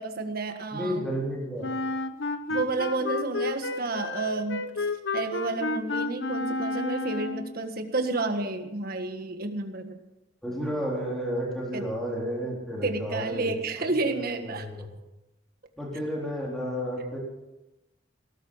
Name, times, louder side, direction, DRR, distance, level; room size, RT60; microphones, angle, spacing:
voice 1, 0.0-1.1 2.5-4.7 5.1-10.0 11.7-11.9 12.8-14.7, right 3 dB, 50° right, 7 dB, 1.7 m, -30 dB
voice 2, 0.7-1.7 10.4-13.5 14.0-14.9 15.8-17.2, equal, ahead, -4 dB, 3.8 m, -32 dB
Wind instrument woodwind instrument, 1.6-7.6, left 3 dB, 70° left, 1.1 m, -31 dB
18.5 x 13.5 x 5.6 m, 0.97 s
head